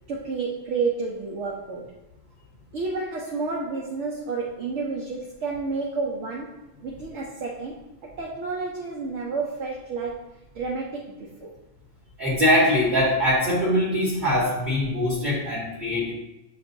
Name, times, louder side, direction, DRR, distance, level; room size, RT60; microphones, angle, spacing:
voice 1, 0.1-1.9 2.7-11.5, right 4 dB, 65° right, -2 dB, 0.9 m, -30 dB
voice 2, 12.2-16.1, left 1 dB, 40° right, -5 dB, 1.1 m, -22 dB
6.8 x 2.5 x 2.6 m, 0.95 s
omnidirectional pair, 1.4 m